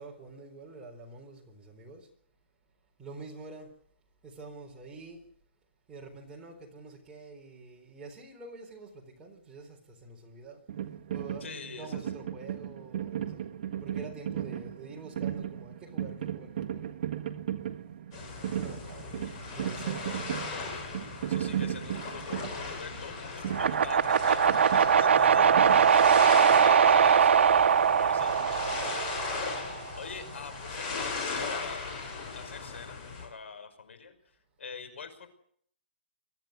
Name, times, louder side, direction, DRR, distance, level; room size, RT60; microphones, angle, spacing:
voice 1, 0.0-2.1 3.0-3.7 4.2-5.2 5.9-10.6 11.1-13.5 13.8-16.8 18.4-20.3 25.4-25.6 30.3-30.5, right 3 dB, 10° right, 4.1 m, -47 dB
sound 1, 10.7-26.4, right 10 dB, 45° right, 1.5 m, -36 dB
voice 2, 11.4-12.0 21.3-28.9 30.0-31.9 32.3-35.3, left 5 dB, 90° left, 5.6 m, -44 dB
sound 2, 18.1-33.3, left 4 dB, 30° left, 6.8 m, -38 dB
sound 3, 23.5-29.7, right 7 dB, 75° right, 1.0 m, -22 dB
23.0 x 14.5 x 8.2 m
hypercardioid pair, 170°, 6 cm